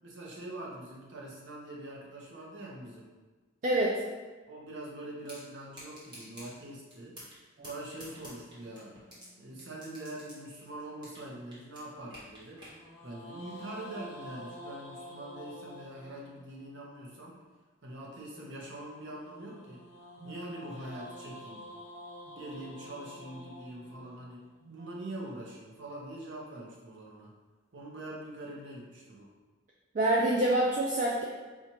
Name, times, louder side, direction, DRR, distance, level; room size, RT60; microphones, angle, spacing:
voice 1, 0.0-3.1 4.5-7.2 7.6-9.0 9.4-12.6 13.0-17.4 17.8-19.8 20.2-21.7 22.4-27.3 27.7-29.3, right 1 dB, 60° right, -3 dB, 0.8 m, -43 dB
voice 2, 3.6-4.0 20.2-20.3 24.7-24.8 29.9-31.2, right 1 dB, 40° right, -3 dB, 0.3 m, -26 dB
sound 1, 5.3-5.4 5.7-6.5 6.9-7.4 7.6-9.3 9.6-11.3 11.5-12.7, equal, 20° right, 1.0 m, -48 dB
sound 2, 8.0-10.4 12.6-16.8 18.9-25.1, left 1 dB, 80° left, 0.8 m, -49 dB
4.3 x 2.4 x 2.8 m, 1.3 s
head